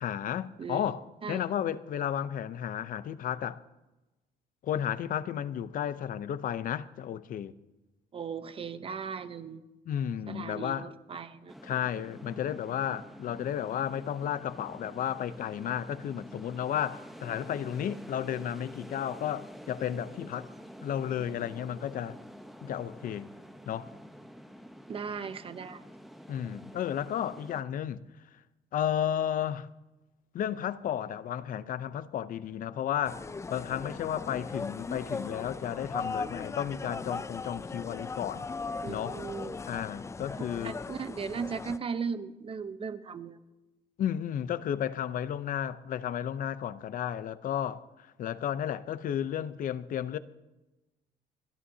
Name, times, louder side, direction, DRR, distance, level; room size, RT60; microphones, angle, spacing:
voice 1, 0.0-3.6 4.6-7.5 9.9-10.9 11.6-20.5 20.8-22.2 22.6-23.3 23.7-23.9 26.3-28.0 28.7-29.7 30.3-33.2 33.5-38.5 38.9-39.2 39.7-40.8 44.0-47.8 48.2-50.2, left 10 dB, 55° left, 0.7 m, -33 dB
voice 2, 8.1-9.6 10.3-11.5 24.9-25.8 38.8-39.6 40.6-43.4, right 6 dB, 35° right, 0.9 m, -37 dB
sound 1, 11.5-27.6, equal, ahead, 0.9 m, -48 dB
sound 2, 33.1-41.8, left 4 dB, 15° left, 0.4 m, -38 dB
29.0 x 11.0 x 2.8 m
cardioid pair, 110°, 17 cm